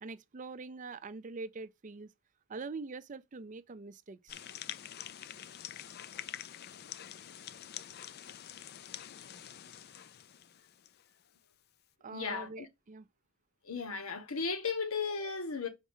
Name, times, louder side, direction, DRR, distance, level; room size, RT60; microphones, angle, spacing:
voice 1, 0.0-2.1 2.5-4.4 12.0-13.1, right 3 dB, 35° right, 0.5 m, -44 dB
sound 1, 4.3-11.1, left 10 dB, 45° left, 0.4 m, -46 dB
voice 2, 12.1-12.7 13.6-15.7, left 5 dB, 85° left, 1.3 m, -35 dB
6.1 x 4.3 x 5.5 m
head